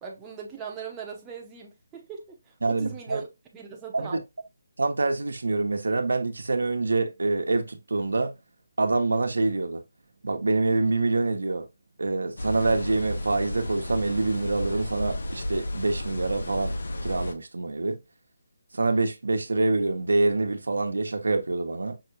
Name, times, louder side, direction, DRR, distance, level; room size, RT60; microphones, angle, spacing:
voice 1, 0.0-3.3 3.5-4.2, right 7 dB, 10° right, 0.7 m, -40 dB
voice 2, 2.6-3.2 3.9-4.2 4.8-8.3 8.8-9.8 10.2-11.7 12.0-16.7 17.0-18.0 18.7-22.0, right 3 dB, 90° right, 1.0 m, -26 dB
sound 1, 12.4-17.4, left 1 dB, 75° left, 0.8 m, -33 dB
5.7 x 2.3 x 3.0 m
hypercardioid pair, 165°, 0 cm